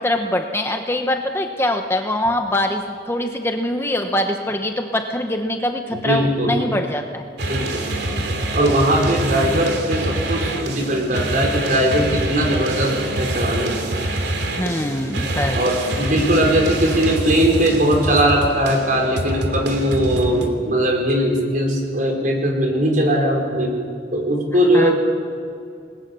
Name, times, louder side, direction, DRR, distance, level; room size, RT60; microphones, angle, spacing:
voice 1, 0.0-7.2 9.4-9.7 14.5-15.6 24.7-24.9, left 1 dB, 15° left, 4 dB, 1.0 m, -23 dB
voice 2, 6.0-6.6 7.4-7.8 8.1-8.3 8.5-13.9 15.5-23.7 24.1-24.9, right 1 dB, 50° right, 1 dB, 5.0 m, -19 dB
sound 1, 7.4-20.5, right 1 dB, 75° right, 2.9 m, -25 dB
29.5 x 20.5 x 7.0 m, 2.4 s
head